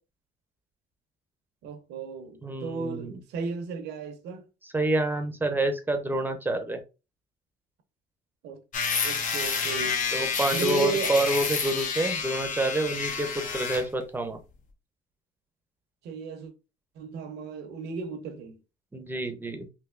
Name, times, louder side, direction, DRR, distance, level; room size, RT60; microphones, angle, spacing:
voice 1, 1.6-4.5 8.4-8.6 9.0-10.0 10.5-11.1 16.0-16.5 17.0-18.6, right 5 dB, 80° right, 0.7 m, -34 dB
voice 2, 2.4-3.2 4.6-6.8 10.1-14.4 18.9-19.7, right 2 dB, 10° right, 0.6 m, -28 dB
sound 1, 8.7-13.9, left 5 dB, 50° left, 0.7 m, -29 dB
3.4 x 2.6 x 2.4 m
cardioid pair, 110°, 17 cm